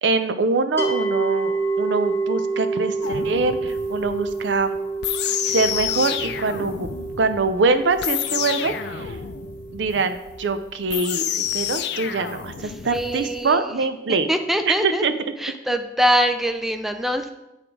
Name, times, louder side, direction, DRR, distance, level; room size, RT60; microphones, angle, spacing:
voice 1, 0.0-4.8 5.4-9.2 9.7-14.3 14.7-15.1, right 3 dB, 80° right, 10 dB, 0.5 m, -24 dB
sound 1, 0.8-11.9, right 3 dB, 15° left, 1.0 m, -29 dB
sound 2, 3.0-13.5, left 10 dB, 65° left, 0.4 m, -30 dB
voice 2, 12.6-13.8 14.3-15.0 15.4-17.3, equal, ahead, 7 dB, 0.4 m, -23 dB
8.8 x 3.7 x 4.6 m, 0.92 s
head